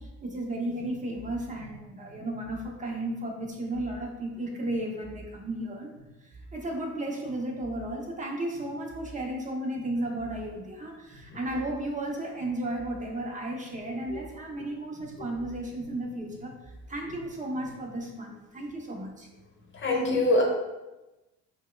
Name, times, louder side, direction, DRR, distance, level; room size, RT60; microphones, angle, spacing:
voice 1, 0.0-19.3, right 1 dB, 20° right, 0 dB, 0.8 m, -34 dB
voice 2, 19.7-20.4, left 2 dB, 35° left, 0 dB, 1.0 m, -24 dB
5.2 x 2.2 x 2.3 m, 1.1 s
supercardioid pair, 90°, 35 cm